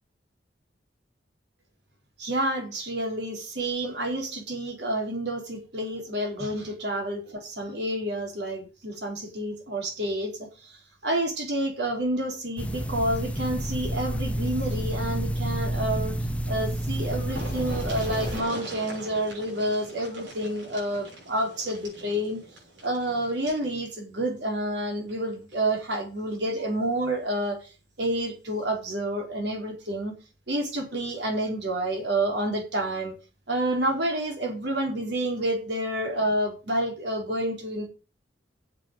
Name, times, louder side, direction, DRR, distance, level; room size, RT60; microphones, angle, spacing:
voice 1, 2.2-10.8 11.0-16.1 16.5-22.4 22.8-27.6 28.0-30.1 30.5-33.1 33.5-37.9, right 1 dB, 65° right, 2 dB, 4.4 m, -29 dB
sound 1, 12.6-18.4, right 1 dB, 5° left, 0.7 m, -29 dB
sound 2, 16.9-23.7 25.0-25.1 25.5-25.6, right 1 dB, 90° right, 6.4 m, -42 dB
8.4 x 7.6 x 7.8 m, 0.33 s
head